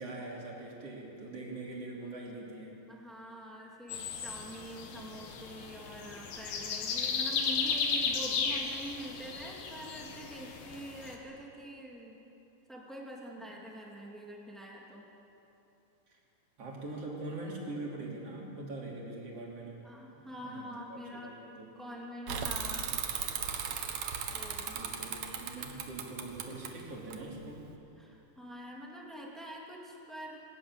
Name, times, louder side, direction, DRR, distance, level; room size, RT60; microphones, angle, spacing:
voice 1, 0.0-2.8 16.6-19.9 20.2-21.7 24.7-27.7, right 2 dB, 35° right, -2 dB, 3.6 m, -43 dB
voice 2, 2.9-12.1 12.7-15.0 19.8-21.3 21.7-22.8 24.3-24.8 28.0-30.4, equal, ahead, -3 dB, 0.9 m, -45 dB
sound 1, 3.9-11.2, left 5 dB, 65° left, 2.9 m, -35 dB
Bicycle / Mechanisms, 22.3-27.7, right 7 dB, 80° right, 1.5 m, -37 dB
22.0 x 13.5 x 9.2 m, 2.9 s
omnidirectional pair, 5.1 m